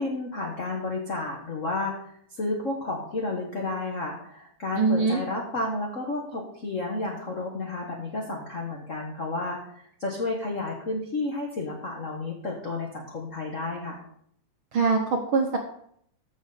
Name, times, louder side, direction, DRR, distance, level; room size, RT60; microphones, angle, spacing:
voice 1, 0.0-1.9 2.4-9.7 10.0-14.0, left 2 dB, 50° left, -1 dB, 0.9 m, -31 dB
voice 2, 4.8-5.2 14.7-15.6, right 4 dB, 65° right, 2 dB, 1.3 m, -23 dB
14.5 x 6.1 x 4.1 m, 0.67 s
omnidirectional pair, 3.5 m